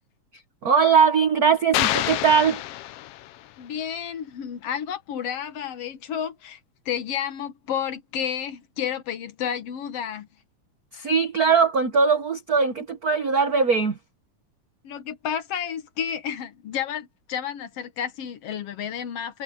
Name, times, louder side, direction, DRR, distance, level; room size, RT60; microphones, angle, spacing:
voice 1, 0.6-2.6 10.9-14.0, right 5 dB, 80° right, 0.8 m, -20 dB
sound 1, 1.7-3.5, left 15 dB, 80° left, 1.4 m, -27 dB
voice 2, 3.6-6.6 6.9-10.3 14.8-19.4, left 8 dB, 60° left, 2.0 m, -31 dB
omnidirectional pair, 3.4 m